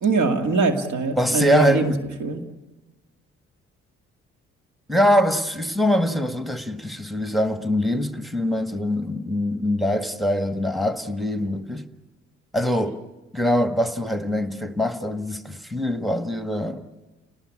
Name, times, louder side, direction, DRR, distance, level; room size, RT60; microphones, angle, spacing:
voice 1, 0.0-1.9 2.2-2.4, right 3 dB, 65° right, 2.3 m, -22 dB
voice 2, 1.2-2.1 4.9-11.9 12.5-13.0 13.3-16.9, left 1 dB, ahead, 1.6 m, -23 dB
29.5 x 19.5 x 8.5 m
hypercardioid pair, 50°, 31 cm